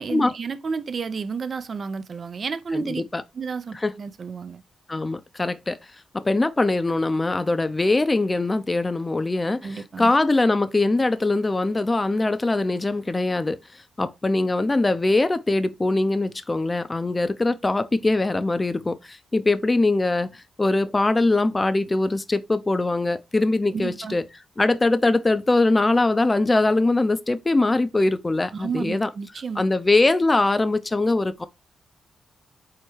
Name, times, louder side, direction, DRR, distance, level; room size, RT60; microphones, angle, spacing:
voice 1, 0.0-3.0 3.3-4.6 9.6-10.1 23.7-24.2 28.5-29.6, right 5 dB, 55° right, 0.5 m, -31 dB
voice 2, 2.7-3.2 3.8-3.9 4.9-5.8 6.1-13.6 14.0-24.2 24.6-29.1 29.6-31.5, left 2 dB, 30° left, 0.5 m, -22 dB
4.7 x 2.2 x 4.4 m
supercardioid pair, 45°, 0 cm